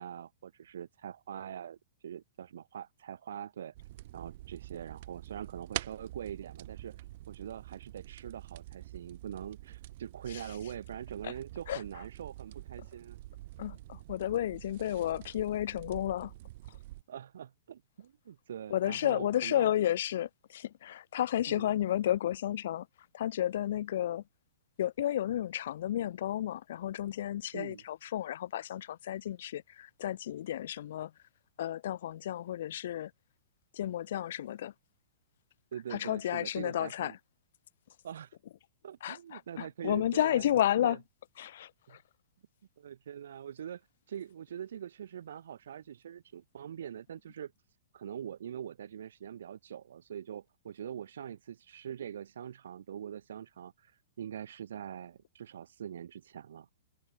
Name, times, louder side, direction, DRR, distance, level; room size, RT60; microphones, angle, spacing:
voice 1, 0.0-1.8 2.0-3.7 4.1-13.2 17.1-19.7 21.5-21.7 27.5-27.8 35.7-37.1 38.0-38.4 38.8-40.4 40.8-41.0 41.9-42.0 42.8-43.8 44.1-47.5 47.9-56.7, right 9 dB, 75° right, 0.5 m, -43 dB
sound 1, 3.7-17.0, right 17 dB, 45° right, 1.2 m, -46 dB
voice 2, 13.6-16.3 18.7-22.9 23.1-24.2 24.8-31.1 31.6-33.1 33.7-34.7 35.9-37.1 39.0-41.0 41.4-42.0, left 12 dB, 60° left, 0.4 m, -32 dB
hypercardioid pair, 160°, 0 cm